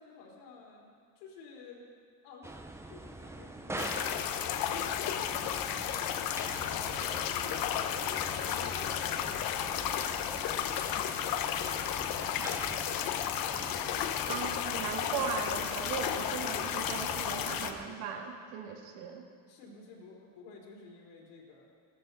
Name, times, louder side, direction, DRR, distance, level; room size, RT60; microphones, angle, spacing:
voice 1, 0.0-1.8 2.2-2.6 2.9-6.2 6.7-12.1 13.5-13.9 19.5-21.7, left 4 dB, 75° left, -2 dB, 3.9 m, -52 dB
sound 1, 2.4-17.8, right 2 dB, 5° right, 0.6 m, -45 dB
sound 2, 3.8-17.7, left 9 dB, 45° left, 0.9 m, -33 dB
voice 2, 14.3-19.3, right 7 dB, 70° right, 3 dB, 2.0 m, -38 dB
14.5 x 14.0 x 4.1 m, 2.1 s
supercardioid pair, 120°, 50 cm